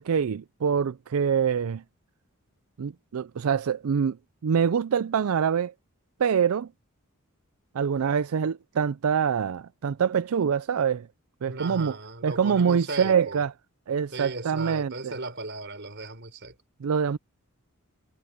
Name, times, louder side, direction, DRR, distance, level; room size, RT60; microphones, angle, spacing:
voice 1, 0.0-1.8 2.8-4.2 4.4-5.7 6.2-6.7 7.7-11.1 11.4-11.9 12.2-13.5 13.9-15.1 16.8-17.2, right 7 dB, 80° right, 0.4 m, -25 dB
voice 2, 11.4-13.4 14.1-16.5, right 3 dB, 55° right, 5.3 m, -36 dB
head